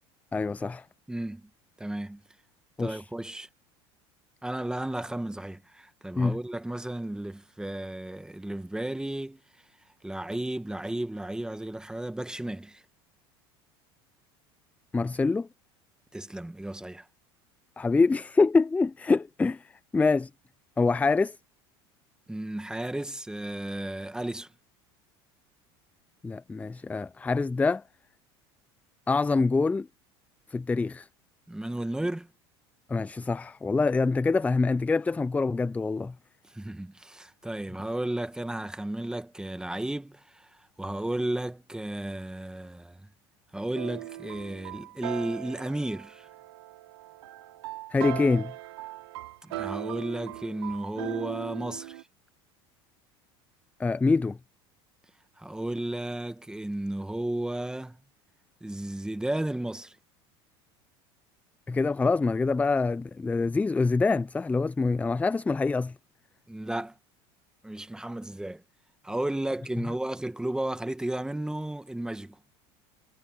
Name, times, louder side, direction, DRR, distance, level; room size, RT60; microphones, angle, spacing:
voice 1, 0.3-0.8 2.8-3.0 6.2-6.4 14.9-15.5 17.8-20.3 20.8-21.4 26.2-27.8 29.1-29.9 30.5-31.1 32.9-36.1 47.9-48.5 53.8-54.4 61.7-65.9, left 4 dB, 10° left, 0.4 m, -25 dB
voice 2, 1.1-1.4 1.8-2.2 2.8-3.5 4.4-9.4 10.0-12.8 16.1-17.1 22.3-24.5 31.5-32.3 36.5-40.5 40.8-43.0 43.5-46.3 49.4-52.0 55.4-58.0 58.6-59.9 66.5-66.9 67.6-68.6 69.0-72.4, right 1 dB, 5° right, 1.6 m, -33 dB
sound 1, 43.7-52.0, right 17 dB, 85° right, 5.9 m, -39 dB
supercardioid pair, 100°, 13 cm